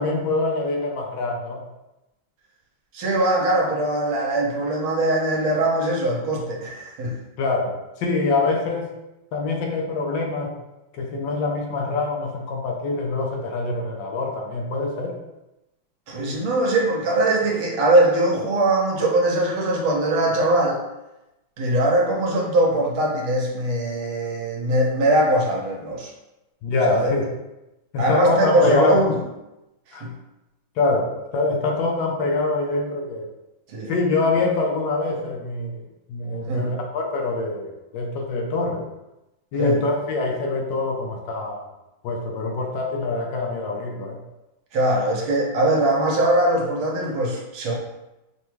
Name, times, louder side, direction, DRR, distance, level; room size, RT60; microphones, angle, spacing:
voice 1, 0.0-1.6 7.4-8.9 9.3-10.6 10.9-15.1 26.6-27.3 27.9-29.0 29.9-30.1 30.8-33.3 33.9-35.8 36.1-38.9 39.5-41.6 42.0-44.2, left 3 dB, 70° left, 1 dB, 1.2 m, -24 dB
voice 2, 2.9-7.1 16.1-20.8 21.6-26.1 26.9-27.1 28.0-29.2 30.0-30.1 33.7-33.9 36.5-36.7 39.6-39.8 44.7-47.7, right 1 dB, 85° right, -1 dB, 1.7 m, -21 dB
5.5 x 2.2 x 3.1 m, 0.96 s
omnidirectional pair, 2.2 m